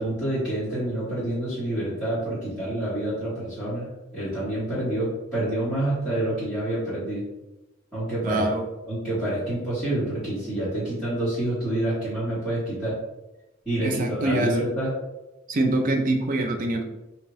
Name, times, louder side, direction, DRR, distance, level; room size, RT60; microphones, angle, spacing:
voice 1, 0.0-7.2 7.9-8.4 8.9-12.9 13.6-14.9, right 1 dB, 5° right, -14 dB, 1.4 m, -27 dB
voice 2, 8.2-8.7 13.8-14.5 15.5-16.8, right 2 dB, 40° right, 3 dB, 0.4 m, -24 dB
2.8 x 2.6 x 3.0 m, 0.99 s
head